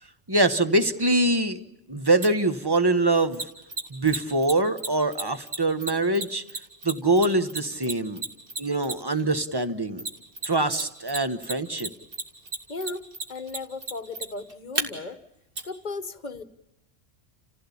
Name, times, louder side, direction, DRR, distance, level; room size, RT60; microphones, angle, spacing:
voice 1, 0.3-1.6 1.9-3.5 3.9-6.4 6.8-8.2 8.6-10.1 10.4-11.9, right 2 dB, 20° right, 10 dB, 1.1 m, -24 dB
Mechanisms, 2.2-2.3 3.3-9.2 10.0-10.8 11.1-14.8 15.6-15.7, right 3 dB, 55° right, 2.4 m, -31 dB
voice 2, 12.7-15.2 15.6-16.4, left 3 dB, 40° left, 12 dB, 1.3 m, -36 dB
29.0 x 16.0 x 8.4 m, 0.87 s
omnidirectional pair, 1.2 m